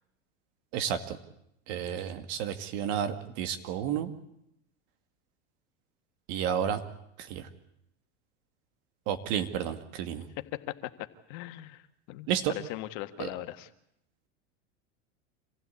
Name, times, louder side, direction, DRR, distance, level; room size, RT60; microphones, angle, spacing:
voice 1, 0.7-1.2 1.7-4.1 6.3-6.8 7.3-7.5 9.1-10.3 12.3-12.5 13.2-13.3, right 9 dB, 60° right, 8 dB, 2.3 m, -31 dB
voice 2, 10.4-10.7 11.3-11.8 12.1-13.7, left 16 dB, 55° left, 9 dB, 1.7 m, -39 dB
26.0 x 15.5 x 8.5 m, 0.79 s
hypercardioid pair, 105°, 35 cm